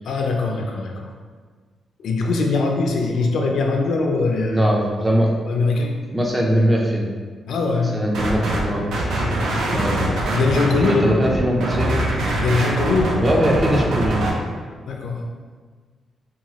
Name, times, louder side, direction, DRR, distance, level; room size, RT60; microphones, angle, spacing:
voice 1, 0.0-1.1 2.0-4.6 5.5-6.0 7.5-7.9 10.3-11.3 12.4-13.3 14.9-15.2, left 3 dB, 70° left, 1 dB, 0.3 m, -21 dB
voice 2, 4.5-5.3 6.1-7.1 7.9-8.9 9.7-10.0 10.9-11.9 13.2-14.2, equal, 10° right, -1 dB, 0.4 m, -20 dB
sound 1, 8.1-8.6 8.9-14.3, right 1 dB, 85° right, 0.5 m, -23 dB
2.9 x 2.3 x 2.8 m, 1.5 s
cardioid pair, 140°, 0 cm